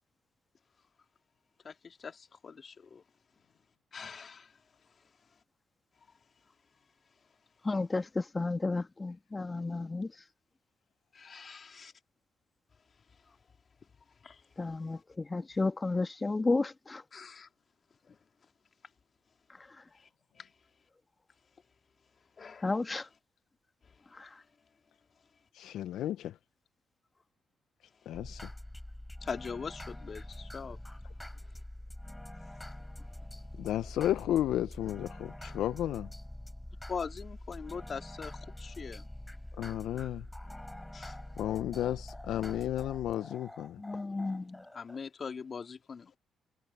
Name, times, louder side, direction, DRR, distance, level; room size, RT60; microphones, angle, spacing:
voice 1, 1.6-3.0 3.9-4.6 11.1-11.9 14.2-14.4 14.7-14.9 17.1-17.5 18.0-18.2 19.9-20.1 20.4-20.5 22.4-22.7 29.2-30.8 36.9-39.1 40.9-41.2 44.7-46.2, left 5 dB, 45° left, 3.0 m, -42 dB
voice 2, 7.6-10.1 14.6-17.0 22.6-23.1 24.1-24.3 43.8-44.6, left 3 dB, 25° left, 1.7 m, -32 dB
voice 3, 25.5-26.4 28.1-28.5 33.6-36.1 39.6-40.2 41.4-43.8, left 12 dB, 75° left, 0.7 m, -33 dB
sound 1, 28.1-45.0, left 1 dB, 10° left, 7.1 m, -45 dB
hypercardioid pair, 50°, 0 cm